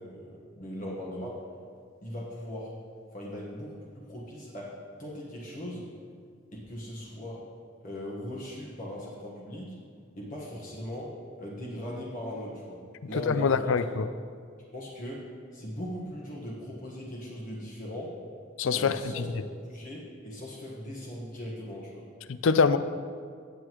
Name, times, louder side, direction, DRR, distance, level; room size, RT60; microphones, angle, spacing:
voice 1, 0.0-1.4 2.0-2.7 3.1-4.7 5.0-5.8 6.5-7.4 7.8-9.7 10.2-11.1 11.4-12.8 13.1-13.8 14.7-15.2 15.5-18.1 18.7-22.0, equal, 40° left, -4 dB, 1.4 m, -39 dB
voice 2, 13.3-14.1 18.6-19.3 22.4-22.8, left 5 dB, 70° left, 13 dB, 0.4 m, -24 dB
16.0 x 7.9 x 3.1 m, 2.1 s
head